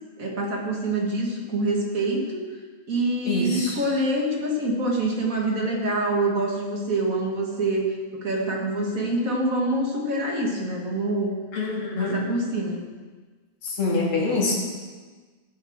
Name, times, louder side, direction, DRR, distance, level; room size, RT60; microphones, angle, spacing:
voice 1, 0.2-2.4 2.9-7.9 8.1-11.3 12.0-12.8, right 2 dB, 40° right, -1 dB, 2.0 m, -25 dB
voice 2, 3.3-3.8 11.5-12.2 13.6-14.5, left 3 dB, 80° left, -2 dB, 2.9 m, -25 dB
14.5 x 8.2 x 3.6 m, 1.4 s
omnidirectional pair, 2.3 m